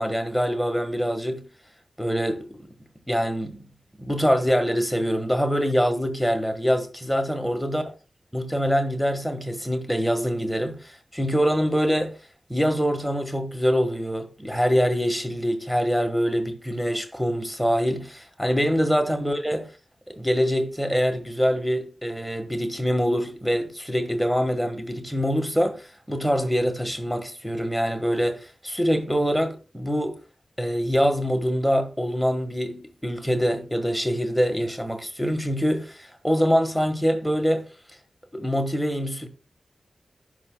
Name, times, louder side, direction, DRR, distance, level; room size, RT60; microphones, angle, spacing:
voice 1, 0.0-1.4 2.0-2.7 3.1-3.7 4.0-7.8 8.3-12.1 12.5-19.7 20.1-30.2 30.6-37.6 38.3-39.3, equal, ahead, 1.5 m, -24 dB
17.5 x 6.3 x 2.3 m
cardioid pair, 50°, 0 cm